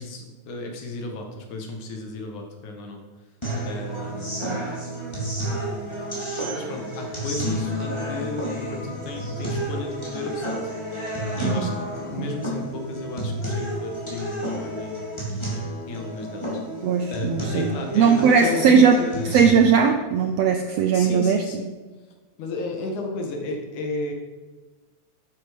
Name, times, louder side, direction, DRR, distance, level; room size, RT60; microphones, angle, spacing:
voice 1, 0.0-3.0 3.7-4.7 6.5-10.6 11.4-15.1 15.9-16.6 17.1-19.3 20.9-21.7 22.4-24.1, left 3 dB, 70° left, 2 dB, 3.1 m, -33 dB
sound 1, 3.4-19.4, equal, 10° left, 2.9 m, -31 dB
voice 2, 11.4-11.7 16.8-19.0 19.3-21.4, right 6 dB, 75° right, 6 dB, 1.5 m, -19 dB
12.0 x 9.5 x 5.2 m, 1.3 s
omnidirectional pair, 3.6 m